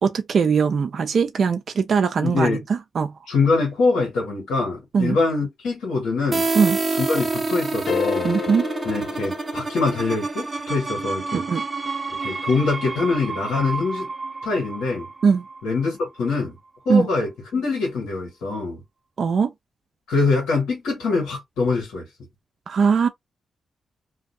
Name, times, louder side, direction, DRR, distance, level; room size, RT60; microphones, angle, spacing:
voice 1, 0.0-3.1 4.9-5.2 6.6-6.8 8.2-8.7 11.3-11.6 15.2-15.4 16.9-17.1 19.2-19.5 22.7-23.1, right 6 dB, 65° right, 0.4 m, -20 dB
voice 2, 2.2-2.6 3.3-6.5 6.9-8.3 8.8-11.4 12.2-14.1 14.4-15.1 15.6-16.6 16.8-18.8 20.1-22.1, left 4 dB, 90° left, 1.2 m, -24 dB
sound 1, 6.3-15.9, right 3 dB, 35° right, 0.7 m, -28 dB
sound 2, 7.9-10.1, left 7 dB, 65° left, 0.4 m, -29 dB
2.6 x 2.3 x 2.5 m
cardioid pair, 55°, 0 cm